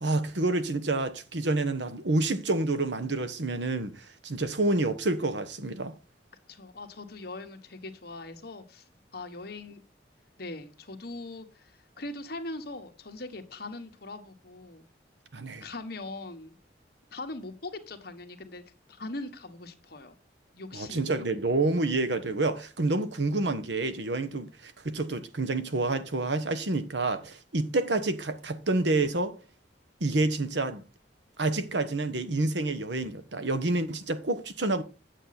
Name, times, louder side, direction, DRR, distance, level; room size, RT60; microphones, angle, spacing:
voice 1, 0.0-5.9 15.3-15.7 20.7-29.4 30.0-30.8 31.4-34.8, right 2 dB, 70° right, 1.1 m, -28 dB
voice 2, 6.5-8.8 9.1-9.8 10.4-14.8 15.6-16.6 17.1-18.6 18.9-20.2 20.5-21.1, left 2 dB, 55° left, 1.5 m, -41 dB
9.1 x 7.6 x 4.2 m
head